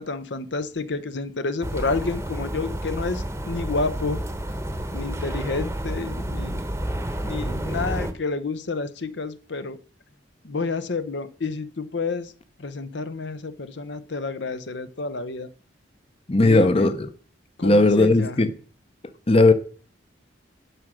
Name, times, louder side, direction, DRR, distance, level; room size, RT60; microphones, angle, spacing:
voice 1, 0.0-4.2 4.9-6.6 7.2-9.8 10.4-12.3 12.6-15.5 16.4-16.9 17.6-18.4, left 3 dB, 65° left, 0.8 m, -29 dB
sound 1, 1.6-8.1, right 1 dB, 15° right, 0.9 m, -30 dB
voice 2, 16.3-17.1 17.6-18.5 19.3-19.5, left 2 dB, 30° left, 0.7 m, -17 dB
11.0 x 6.2 x 6.3 m
head